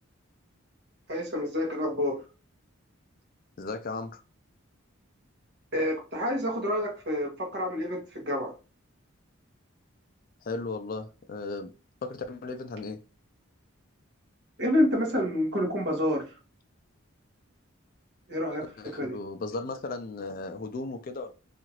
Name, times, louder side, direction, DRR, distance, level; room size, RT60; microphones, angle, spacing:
voice 1, 1.1-2.2 5.7-8.5 14.6-16.4 18.3-18.6 18.9-19.2, left 1 dB, 55° right, 1.1 m, -28 dB
voice 2, 3.6-4.2 10.4-11.7 12.0-13.0 18.8-21.3, left 3 dB, 45° left, 0.3 m, -36 dB
2.8 x 2.4 x 2.9 m
head